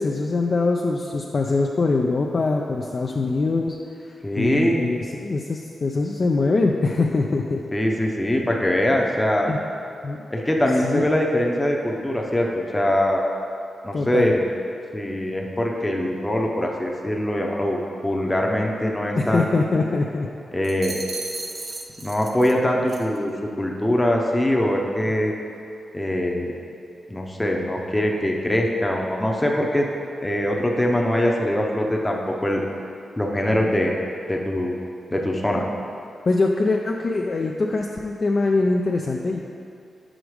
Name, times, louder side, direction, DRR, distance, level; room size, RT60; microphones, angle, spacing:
voice 1, 0.0-3.8 4.4-7.6 9.5-9.6 10.0-10.3 10.8-11.0 13.9-14.3 19.2-20.3 36.3-39.4, left 3 dB, 50° left, 0 dB, 0.4 m, -23 dB
voice 2, 4.2-4.9 7.7-9.5 10.3-13.2 13.8-14.4 14.9-19.7 20.5-21.0 22.0-23.3 23.6-25.3 25.9-26.5 27.1-29.9 30.2-32.6 33.2-34.0 34.3-34.8 35.1-35.7, left 1 dB, 15° left, 0 dB, 0.7 m, -22 dB
sound 1, 20.6-22.6 22.9-23.2, right 3 dB, 45° right, 0.5 m, -35 dB
5.1 x 5.0 x 4.7 m, 2.6 s
cardioid pair, 70°, 0 cm